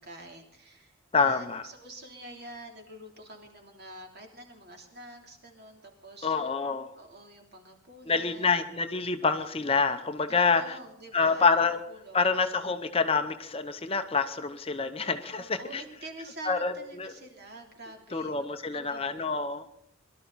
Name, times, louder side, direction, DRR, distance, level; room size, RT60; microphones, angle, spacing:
voice 1, 0.0-6.4 6.9-8.4 10.3-12.3 15.3-19.3, right 2 dB, 50° right, 1 dB, 3.3 m, -47 dB
voice 2, 1.1-1.6 6.2-6.9 8.1-10.8 11.1-11.8 12.1-15.8 16.5-17.1 18.1-19.6, left 4 dB, 25° left, 8 dB, 0.8 m, -27 dB
22.5 x 12.5 x 4.1 m, 0.78 s
head